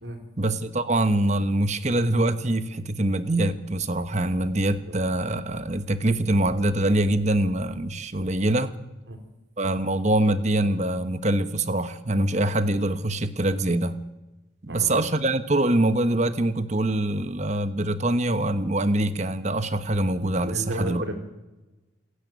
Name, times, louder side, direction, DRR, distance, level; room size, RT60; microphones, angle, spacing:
voice 1, 0.4-8.8 9.6-14.0 14.6-21.0, right 1 dB, 35° right, 11 dB, 1.1 m, -24 dB
voice 2, 14.7-15.0 20.4-21.2, equal, 75° right, 4 dB, 4.0 m, -33 dB
27.5 x 10.0 x 9.4 m, 1.1 s
head